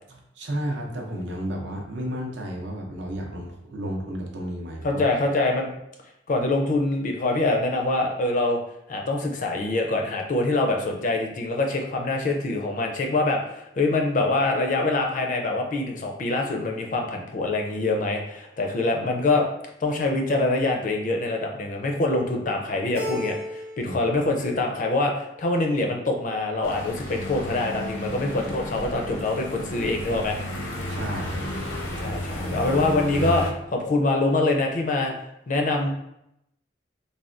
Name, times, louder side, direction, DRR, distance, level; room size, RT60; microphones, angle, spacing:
voice 1, 0.1-5.1 23.8-24.0 30.9-31.7, equal, 65° right, 0 dB, 0.6 m, -32 dB
voice 2, 4.8-5.7 6.3-8.6 8.9-19.5 19.8-30.4 32.0-35.1 35.5-35.9, left 2 dB, 40° left, 2 dB, 0.4 m, -24 dB
Keyboard (musical), 23.0-24.1 24.4-25.1, equal, 30° right, 0.9 m, -34 dB
sound 1, 26.6-33.5, left 1 dB, 85° left, 0.6 m, -32 dB
3.4 x 2.2 x 2.4 m, 0.82 s
head